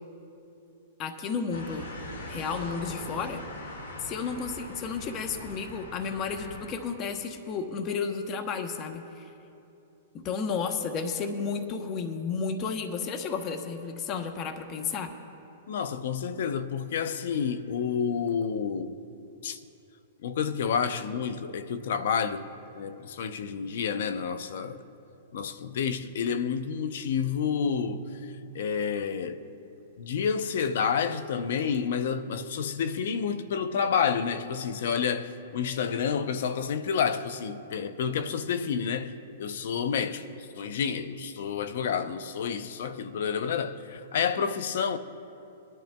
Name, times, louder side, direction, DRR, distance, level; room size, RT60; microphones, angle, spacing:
voice 1, 1.0-1.9 2.3-3.4 4.0-9.3 10.1-15.1, left 5 dB, 35° left, 0.9 m, -32 dB
sound 1, 1.5-6.7, left 1 dB, 85° left, 1.9 m, -41 dB
voice 2, 15.7-18.9 19.4-19.6 20.2-22.5 22.7-24.8 25.3-28.1 28.5-29.4 30.0-45.0, left 6 dB, 70° left, 0.6 m, -29 dB
22.0 x 11.0 x 2.3 m
hypercardioid pair, 130°, 0 cm